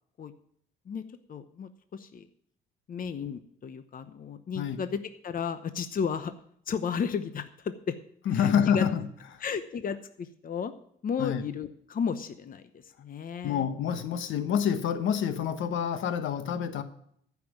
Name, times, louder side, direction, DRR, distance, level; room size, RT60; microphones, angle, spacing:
voice 1, 1.3-2.3 2.9-6.3 6.7-8.0 8.3-8.9 9.4-10.7 11.0-13.7, left 6 dB, 45° left, 0.9 m, -34 dB
voice 2, 8.3-9.1 9.3-9.4 11.2-11.4 13.4-16.8, left 8 dB, 75° left, 1.2 m, -27 dB
14.0 x 6.0 x 7.3 m
cardioid pair, 90°, 20 cm